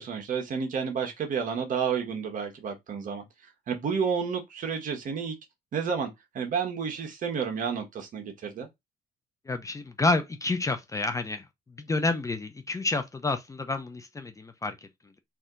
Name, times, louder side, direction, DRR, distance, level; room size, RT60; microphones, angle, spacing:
voice 1, 0.0-3.2 3.7-5.3 5.7-8.7, right 6 dB, 50° right, 1.4 m, -30 dB
voice 2, 9.5-11.4 11.8-14.7, left 3 dB, 20° left, 0.6 m, -29 dB
4.2 x 2.8 x 3.9 m
cardioid pair, 110°, 17 cm